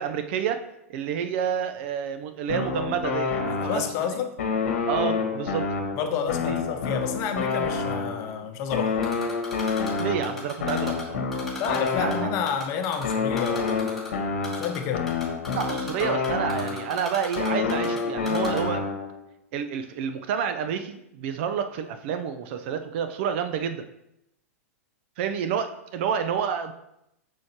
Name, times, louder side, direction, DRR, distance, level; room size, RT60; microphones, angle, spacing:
voice 1, 0.0-4.2 4.9-5.7 6.4-6.6 10.0-11.2 12.0-12.3 15.5-18.8 19.5-23.9 25.2-26.7, right 7 dB, 50° right, 8 dB, 0.6 m, -29 dB
sound 1, 2.5-4.0 4.4-8.3 8.7-12.6 13.0-17.0 17.4-19.2, left 4 dB, 60° left, 1.2 m, -28 dB
voice 2, 3.5-4.3 6.0-9.1 11.5-13.8 14.6-15.1, left 7 dB, 40° left, 6 dB, 0.9 m, -29 dB
Typing, 9.0-11.0 11.3-12.2 12.5-14.1 14.4-14.8 15.1-18.0 18.3-18.6, left 3 dB, 5° left, 2.4 m, -37 dB
6.3 x 6.3 x 2.9 m, 0.81 s
figure-of-eight pair, 105°, 8 cm